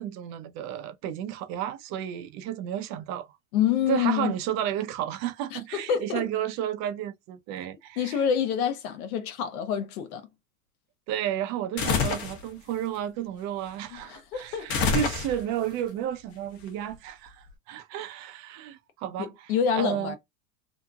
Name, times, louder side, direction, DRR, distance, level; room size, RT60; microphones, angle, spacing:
voice 1, 0.0-3.3 3.9-8.2 11.1-20.1, right 11 dB, 40° right, 0.5 m, -32 dB
voice 2, 3.5-4.3 5.5-6.3 8.0-10.3 13.9-14.7 19.2-20.2, left 8 dB, 75° left, 1.0 m, -27 dB
sound 1, 11.8-12.4 14.7-15.6, left 5 dB, 50° left, 1.0 m, -26 dB
2.9 x 2.6 x 2.3 m
supercardioid pair, 130°, 43 cm